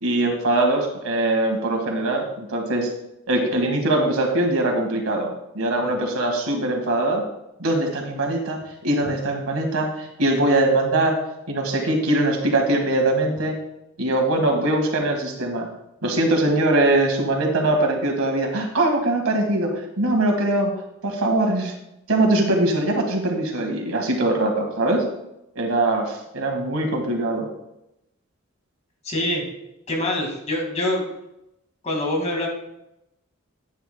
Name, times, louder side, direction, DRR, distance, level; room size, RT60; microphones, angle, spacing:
voice 1, 0.0-2.9 3.3-7.2 7.6-11.2 11.5-13.6 14.0-15.7 16.0-20.7 21.0-21.7 22.1-25.0 25.6-27.5, right 2 dB, 90° right, 2 dB, 1.8 m, -22 dB
voice 2, 29.0-29.5 29.9-31.1 31.8-32.5, left 1 dB, 35° left, 0 dB, 2.0 m, -24 dB
9.8 x 9.5 x 2.3 m, 0.86 s
head